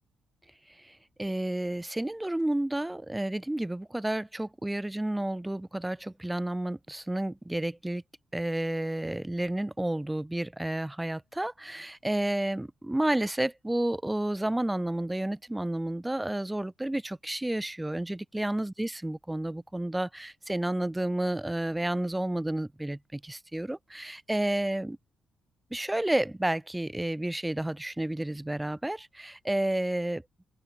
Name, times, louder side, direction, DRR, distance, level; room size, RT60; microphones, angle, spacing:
voice 1, 0.7-8.0 8.3-25.0 25.7-30.2, right 1 dB, 10° right, 2.7 m, -31 dB
open air
cardioid pair, 90°, 0 cm